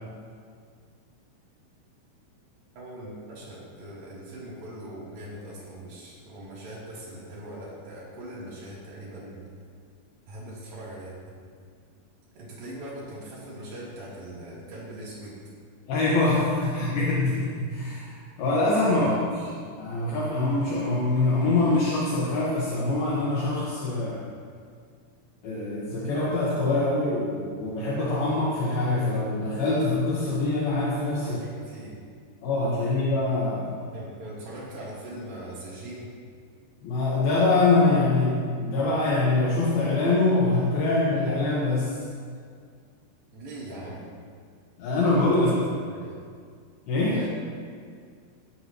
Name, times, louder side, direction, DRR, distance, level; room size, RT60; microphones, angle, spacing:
voice 1, 2.8-9.4 10.3-11.4 12.4-15.4 18.9-19.7 31.2-32.0 33.9-36.2 43.3-44.1 45.2-46.2 47.1-47.3, right 1 dB, 55° right, -6 dB, 4.9 m, -41 dB
voice 2, 15.9-19.3 19.8-24.3 25.4-31.4 32.4-33.8 36.8-42.0 44.8-45.6 46.9-47.2, left 2 dB, 65° left, -6 dB, 3.2 m, -24 dB
19.5 x 11.5 x 3.1 m, 2.1 s
omnidirectional pair, 4.9 m